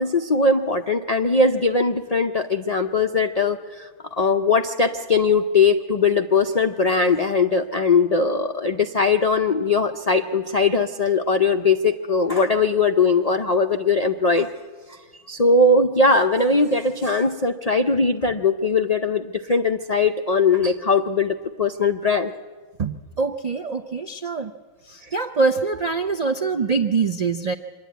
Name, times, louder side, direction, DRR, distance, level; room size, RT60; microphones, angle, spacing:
voice 1, 0.0-3.9 4.2-14.5 15.3-22.3 25.0-25.1, left 3 dB, 75° left, 7 dB, 0.3 m, -20 dB
voice 2, 22.8-24.5 24.9-27.5, right 4 dB, 65° right, 6 dB, 0.4 m, -24 dB
25.0 x 11.5 x 9.3 m, 1.5 s
omnidirectional pair, 1.6 m